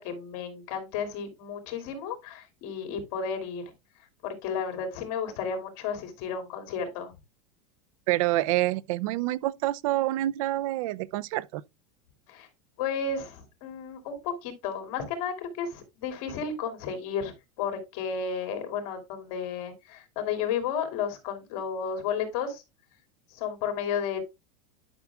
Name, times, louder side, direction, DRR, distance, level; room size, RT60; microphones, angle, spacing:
voice 1, 0.0-3.7 4.2-7.1 12.3-12.5 12.8-17.3 17.6-22.6 23.3-24.2, left 6 dB, 55° left, 2.6 m, -33 dB
voice 2, 8.1-11.6, right 16 dB, 65° right, 0.4 m, -27 dB
11.0 x 6.0 x 2.3 m
supercardioid pair, 155°, 18 cm